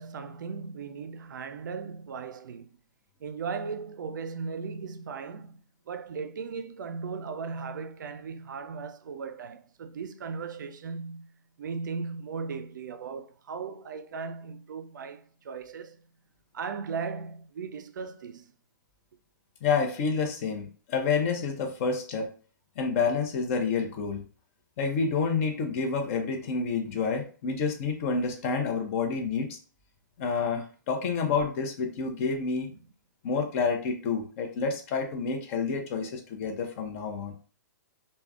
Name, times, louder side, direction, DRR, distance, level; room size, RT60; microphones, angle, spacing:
voice 1, 0.0-2.7 3.2-16.1 16.5-18.5 32.7-32.8, right 5 dB, 70° right, 0.4 m, -37 dB
voice 2, 19.6-22.3 22.8-24.2 24.8-29.6 30.2-32.7 33.2-37.3, left 5 dB, 45° left, 0.6 m, -29 dB
3.3 x 2.1 x 2.3 m
hypercardioid pair, 120°, 10 cm